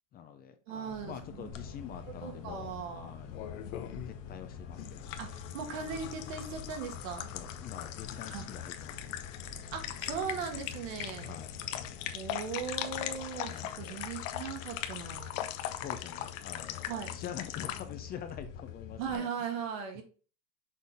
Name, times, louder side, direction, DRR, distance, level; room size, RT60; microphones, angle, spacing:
voice 1, 0.1-3.7 4.1-5.3 7.3-9.2 11.0-11.5 13.4-14.0 15.7-19.3 19.9-20.0, left 9 dB, 25° left, 8 dB, 0.5 m, -46 dB
voice 2, 0.7-1.5 2.2-3.1 5.2-7.3 8.3-8.5 9.7-11.4 12.1-15.4 16.9-17.2 19.0-20.0, right 6 dB, 75° right, 3 dB, 1.9 m, -38 dB
sound 1, 0.9-12.1, left 3 dB, 40° left, 1.4 m, -49 dB
sound 2, 1.5-19.2, left 11 dB, 75° left, 0.9 m, -41 dB
6.4 x 3.7 x 4.0 m, 0.38 s
supercardioid pair, 150°, 39 cm